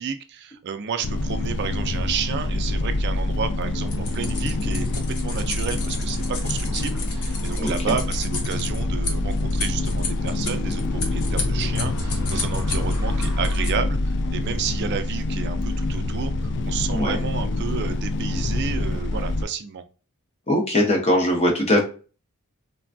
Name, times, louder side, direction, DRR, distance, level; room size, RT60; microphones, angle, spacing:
voice 1, 0.0-10.8 11.1-14.0 14.3-19.8, right 7 dB, 50° right, 9 dB, 0.3 m, -31 dB
sound 1, 1.0-19.4, left 2 dB, 50° left, 0.3 m, -26 dB
sound 2, 3.9-13.7, left 3 dB, 80° left, 0.7 m, -33 dB
voice 2, 16.9-17.2 20.5-21.8, left 1 dB, 30° left, 1 dB, 0.7 m, -20 dB
3.2 x 2.2 x 2.5 m, 0.37 s
head